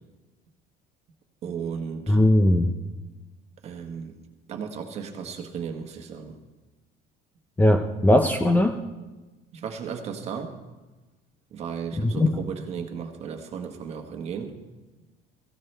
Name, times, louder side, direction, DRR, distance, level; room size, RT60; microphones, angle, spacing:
voice 1, 1.4-2.2 3.6-4.1 4.5-6.4 9.5-10.6 11.5-14.6, right 6 dB, 35° right, 4 dB, 1.4 m, -35 dB
voice 2, 2.1-2.7 7.6-8.8 12.0-12.3, left 1 dB, 10° left, 5 dB, 0.5 m, -19 dB
17.0 x 16.0 x 3.3 m, 1.2 s
cardioid pair, 175°, 19 cm